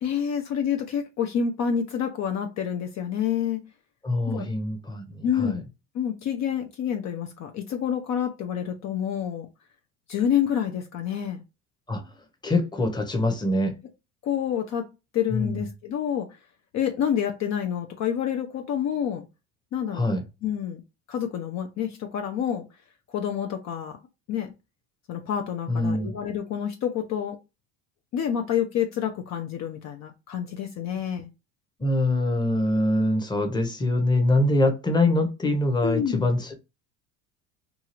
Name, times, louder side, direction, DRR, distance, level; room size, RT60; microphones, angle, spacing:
voice 1, 0.0-3.6 4.3-4.5 5.2-5.6 5.9-9.5 10.1-11.4 14.2-14.9 15.1-16.4 16.7-19.2 19.7-20.1 20.4-20.8 21.1-22.6 23.1-24.0 24.3-24.5 25.1-27.4 28.1-31.3 35.8-36.2, left 8 dB, 45° left, 0.6 m, -28 dB
voice 2, 4.0-5.6 11.9-12.0 12.4-13.7 15.3-15.6 19.9-20.2 25.7-26.1 31.8-36.5, left 1 dB, 10° left, 0.8 m, -24 dB
2.7 x 2.4 x 2.9 m
supercardioid pair, 100°, 37 cm